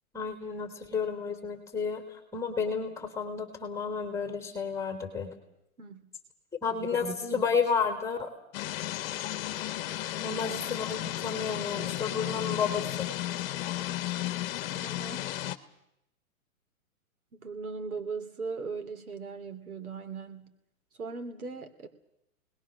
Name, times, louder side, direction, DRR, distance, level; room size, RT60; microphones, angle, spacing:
voice 1, 0.1-5.3 6.6-8.3 10.2-13.1, left 5 dB, 5° left, 6 dB, 3.3 m, -31 dB
voice 2, 5.8-6.1 10.3-10.4 14.7-15.3 17.3-20.6 21.0-21.9, right 4 dB, 85° right, 8 dB, 2.8 m, -39 dB
sound 1, 8.5-15.6, left 14 dB, 40° left, 1.2 m, -34 dB
29.0 x 20.0 x 6.4 m, 0.82 s
hypercardioid pair, 130°, 42 cm